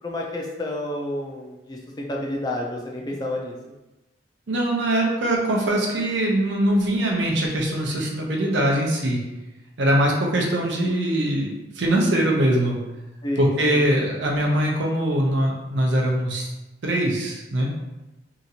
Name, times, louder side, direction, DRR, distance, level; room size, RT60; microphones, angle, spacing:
voice 1, 0.0-3.5 13.2-13.8, left 1 dB, 20° left, -1 dB, 0.4 m, -30 dB
voice 2, 4.5-9.2 9.8-12.8 13.4-16.5 16.8-17.7, right 1 dB, 70° right, -1 dB, 0.6 m, -22 dB
2.8 x 2.4 x 2.7 m, 1.0 s
head